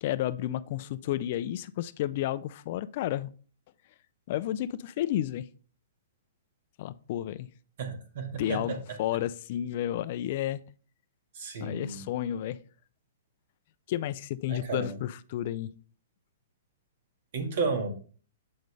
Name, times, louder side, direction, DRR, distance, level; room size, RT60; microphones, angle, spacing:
voice 1, 0.0-3.3 4.3-5.5 6.8-7.5 8.4-10.6 11.6-12.6 13.9-15.7, left 12 dB, 50° left, 0.4 m, -31 dB
voice 2, 7.8-9.0 11.3-12.0 14.5-15.0 17.3-17.9, right 4 dB, 60° right, 1.7 m, -33 dB
7.8 x 5.2 x 3.2 m
hypercardioid pair, 150°, 0 cm